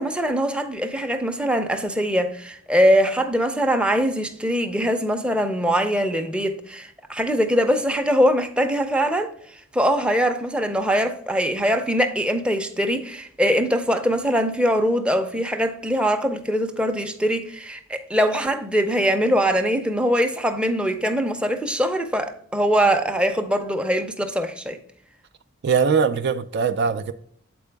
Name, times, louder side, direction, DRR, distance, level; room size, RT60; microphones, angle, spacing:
voice 1, 0.0-9.3 9.7-24.8, equal, 5° right, 0.5 m, -22 dB
voice 2, 25.6-27.1, right 6 dB, 55° right, 0.4 m, -21 dB
7.6 x 4.5 x 3.4 m
head